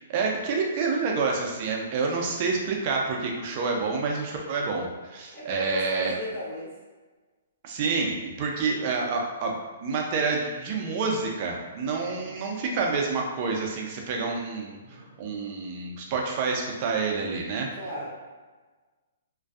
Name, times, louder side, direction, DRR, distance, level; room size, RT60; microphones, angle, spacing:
voice 1, 0.0-6.2 7.6-9.5 9.8-17.7, right 4 dB, 40° right, 0 dB, 0.5 m, -28 dB
voice 2, 5.3-6.7 12.0-12.4 14.7-15.2 17.7-18.1, left 1 dB, ahead, -13 dB, 0.8 m, -36 dB
2.5 x 2.2 x 2.4 m, 1.3 s
hypercardioid pair, 140°, 0 cm